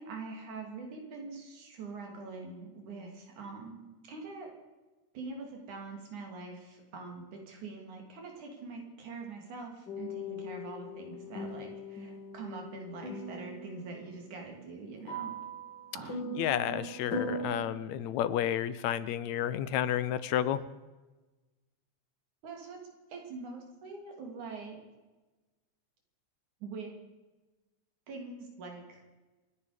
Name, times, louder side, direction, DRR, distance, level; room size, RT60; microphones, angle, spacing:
voice 1, 0.0-4.5 5.1-15.3 15.9-16.4 16.7-16.8 22.4-22.8 23.1-24.8 26.6-26.9 28.1-29.0, right 4 dB, 80° right, 2 dB, 4.2 m, -44 dB
sound 1, 9.9-17.7, left 1 dB, 40° left, 2.8 m, -40 dB
voice 2, 16.4-20.6, left 11 dB, 75° left, 15 dB, 2.0 m, -31 dB
28.0 x 10.0 x 5.1 m, 1.2 s
omnidirectional pair, 3.4 m